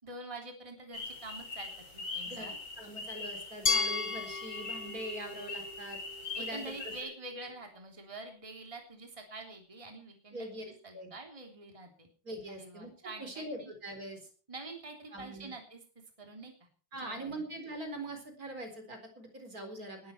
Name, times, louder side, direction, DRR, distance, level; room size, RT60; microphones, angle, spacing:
voice 1, 0.0-2.6 6.3-12.1 12.5-13.7 14.5-15.8 16.2-16.5 16.9-17.4, right 2 dB, 15° right, 2 dB, 3.4 m, -46 dB
sound 1, 0.9-7.0, left 3 dB, 85° left, 4.4 m, -42 dB
voice 2, 2.3-6.0 6.4-6.9 10.3-11.1 12.2-12.9 13.2-14.3 15.1-15.5 16.9-20.1, right 1 dB, 50° right, 5 dB, 4.6 m, -43 dB
Glass, 3.7-6.6, left 3 dB, 30° left, 1.0 m, -34 dB
20.0 x 13.0 x 4.5 m, 0.40 s
omnidirectional pair, 2.1 m